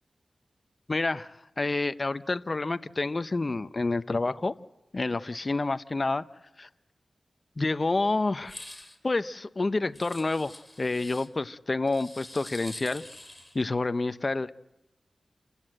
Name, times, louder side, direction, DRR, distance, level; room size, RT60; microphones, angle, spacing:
voice 1, 0.9-4.6 4.9-6.2 6.6-6.7 7.6-8.5 9.0-13.0 13.5-14.5, left 3 dB, 40° left, 12 dB, 0.7 m, -28 dB
sound 1, 8.4-9.0 9.9-11.3 11.9-13.6, left 1 dB, 10° left, 2.7 m, -45 dB
28.5 x 15.5 x 7.8 m, 0.98 s
wide cardioid pair, 70°, 0 cm